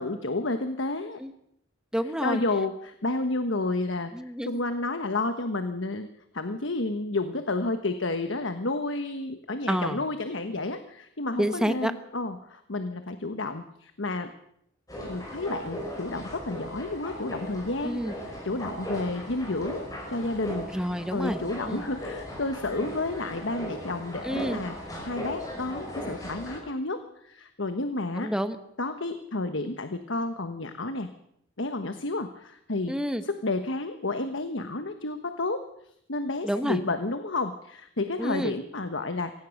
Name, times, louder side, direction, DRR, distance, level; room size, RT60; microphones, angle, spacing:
voice 1, 0.0-1.2 2.2-4.1 4.4-6.1 6.3-14.3 15.0-20.7 21.1-28.3 28.8-31.1 31.6-32.9 33.2-35.6 36.1-39.3, left 2 dB, 70° left, 8 dB, 1.3 m, -31 dB
voice 2, 1.9-2.4 4.1-4.6 9.7-10.0 11.4-11.9 17.8-18.1 20.7-21.4 21.7-21.8 24.2-24.6 28.1-28.6 32.9-33.2 36.4-36.8 38.2-38.5, equal, 5° right, 9 dB, 1.2 m, -29 dB
sound 1, 14.9-26.6, equal, 20° left, 5.9 m, -38 dB
23.5 x 17.5 x 6.5 m, 0.74 s
head